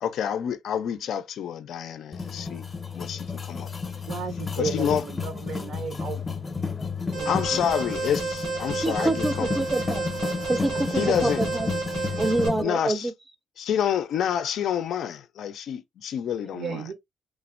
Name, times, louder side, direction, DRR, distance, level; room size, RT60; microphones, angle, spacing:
voice 1, 0.0-2.6 2.9-3.7 4.6-5.0 7.3-9.5 10.9-11.4 12.6-13.1 13.6-16.8, left 9 dB, 75° left, 0.4 m, -28 dB
sound 1, 2.1-12.6, left 4 dB, 30° left, 0.6 m, -32 dB
voice 2, 4.0-6.2 7.0-7.7 11.0-11.1 12.4-12.8 16.5-16.9, right 6 dB, 65° right, 0.7 m, -34 dB
Alarm, 7.1-12.5, right 4 dB, 85° right, 1.4 m, -31 dB
voice 3, 8.8-10.1 10.5-11.7 12.0-13.1, right 2 dB, 20° right, 0.5 m, -26 dB
3.2 x 2.1 x 2.3 m
cardioid pair, 90°, 0 cm